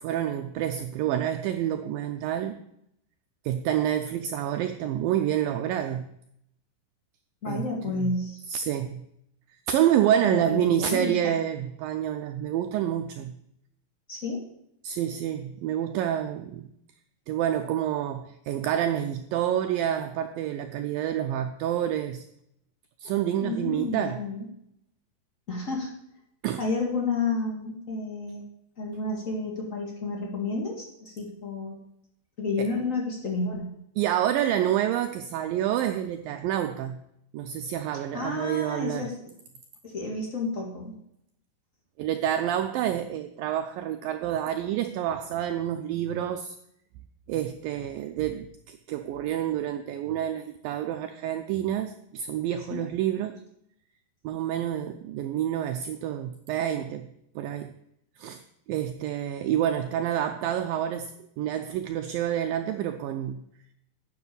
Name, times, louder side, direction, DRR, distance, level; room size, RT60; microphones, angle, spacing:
voice 1, 0.0-2.6 3.5-6.1 7.5-8.2 8.5-9.1 9.7-13.4 14.8-16.7 17.3-22.3 23.0-24.2 26.4-26.6 32.6-32.7 34.0-37.0 37.3-39.1 42.0-46.6 47.3-53.4 54.2-57.1 57.4-57.7 58.2-58.4 58.7-63.4, right 11 dB, 85° right, 8 dB, 2.0 m, -28 dB
voice 2, 7.4-8.4 10.2-11.3 14.1-14.4 23.4-24.4 25.5-25.9 26.6-28.4 28.8-31.8 32.4-33.7 37.9-39.1 39.8-41.0 52.7-52.8, left 3 dB, 40° left, 0 dB, 1.1 m, -31 dB
9.4 x 6.7 x 8.4 m, 0.77 s
omnidirectional pair, 4.6 m